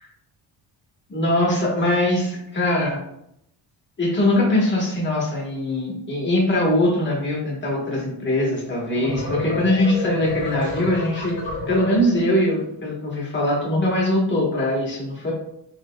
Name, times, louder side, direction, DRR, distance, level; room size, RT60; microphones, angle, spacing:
voice 1, 1.1-3.0 4.0-15.3, left 1 dB, 25° left, -4 dB, 1.3 m, -22 dB
sound 1, 8.7-12.6, left 1 dB, 50° left, 1.2 m, -30 dB
5.2 x 3.8 x 2.3 m, 0.77 s
wide cardioid pair, 180°, 46 cm